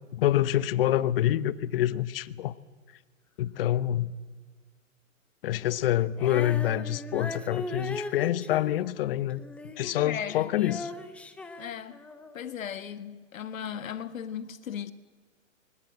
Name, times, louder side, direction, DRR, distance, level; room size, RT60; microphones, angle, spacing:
voice 1, 0.1-2.5 3.4-4.1 5.4-9.4 9.8-10.9, left 12 dB, 45° left, 0.9 m, -26 dB
Female singing, 6.2-10.0 10.3-12.4, left 2 dB, 5° left, 0.6 m, -39 dB
voice 2, 10.0-10.5 11.6-12.0 12.3-14.9, left 8 dB, 75° left, 1.7 m, -36 dB
22.0 x 20.0 x 7.9 m
hypercardioid pair, 145°, 40 cm